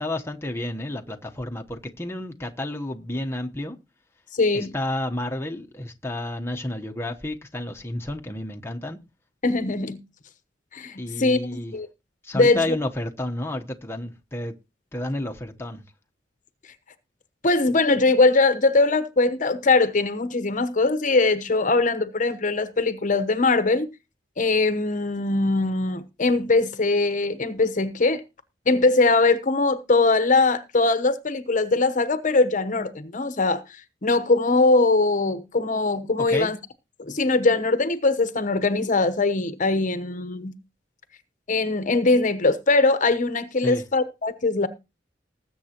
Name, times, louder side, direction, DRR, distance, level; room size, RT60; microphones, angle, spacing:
voice 1, 0.0-3.8 4.5-9.0 11.0-11.7 12.2-14.5 14.9-15.8 36.3-36.5 43.6-43.8, left 1 dB, 15° left, 1.0 m, -31 dB
voice 2, 4.3-4.7 9.4-10.0 10.7-11.4 11.7-11.9 12.3-12.6 17.4-23.9 24.4-28.2 28.7-33.6 34.0-36.6 37.0-40.5 41.5-44.7, left 3 dB, 45° left, 1.0 m, -21 dB
20.0 x 7.9 x 2.9 m
head